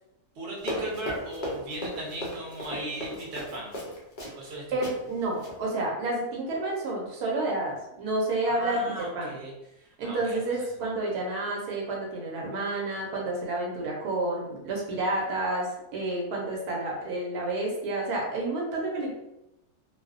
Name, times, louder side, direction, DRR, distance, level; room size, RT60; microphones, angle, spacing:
voice 1, 0.4-3.7 4.3-4.8 8.4-9.5 9.8-10.4 10.8-10.9, right 1 dB, 55° right, -3 dB, 0.8 m, -37 dB
Run, 0.6-4.5 4.8-5.0 5.3-5.6, equal, 80° left, 0.4 m, -36 dB
voice 2, 4.7-9.3 10.0-19.1, right 2 dB, 75° right, -2 dB, 1.1 m, -30 dB
2.6 x 2.0 x 2.4 m, 0.91 s
omnidirectional pair, 1.6 m